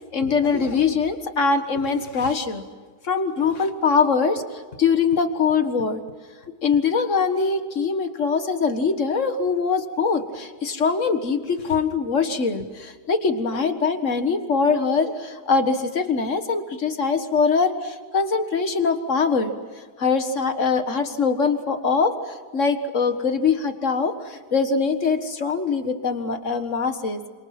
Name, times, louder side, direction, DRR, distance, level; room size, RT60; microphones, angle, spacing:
voice 1, 0.1-2.6 3.0-4.4 4.8-6.0 6.6-19.5 20.0-27.3, left 5 dB, 45° left, 8 dB, 1.9 m, -22 dB
28.5 x 27.0 x 6.0 m, 1.5 s
omnidirectional pair, 1.8 m